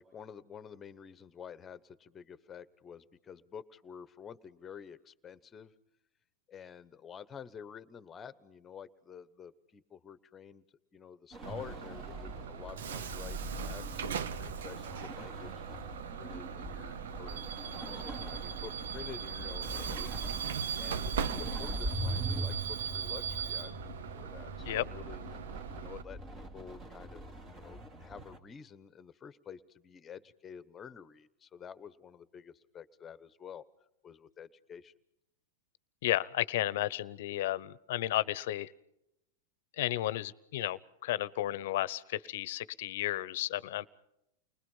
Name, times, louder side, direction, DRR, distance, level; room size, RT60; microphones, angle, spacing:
voice 1, 0.0-5.7 6.5-10.6 10.9-15.5 16.1-17.4 17.8-20.2 20.8-25.3 25.8-27.3 27.5-33.6 34.0-34.9, left 7 dB, 20° left, 1.1 m, -49 dB
sound 1, 11.3-28.4, right 1 dB, 35° right, 2.8 m, -42 dB
Bus / Alarm, 11.4-26.0, right 8 dB, 80° right, 0.8 m, -39 dB
voice 2, 36.0-38.7 39.8-43.9, left 14 dB, 65° left, 0.8 m, -33 dB
29.5 x 20.5 x 5.6 m
hypercardioid pair, 125°, 0 cm